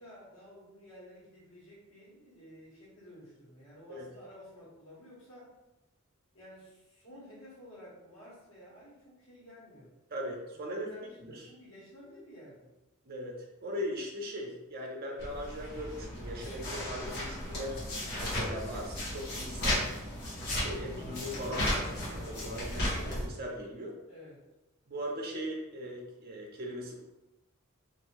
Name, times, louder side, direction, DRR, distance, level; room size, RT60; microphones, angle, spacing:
voice 1, 0.0-5.5 6.3-9.9 10.6-12.7 24.1-24.4, equal, 75° left, -8 dB, 1.3 m, -52 dB
voice 2, 10.1-10.9 11.2-11.5 13.0-13.4 13.6-17.8 18.2-19.9 20.4-24.0 24.9-27.0, equal, 45° right, -1 dB, 0.6 m, -39 dB
sound 1, 15.2-23.3, left 1 dB, 50° left, 1.1 m, -35 dB
2.7 x 2.6 x 2.9 m, 1.0 s
head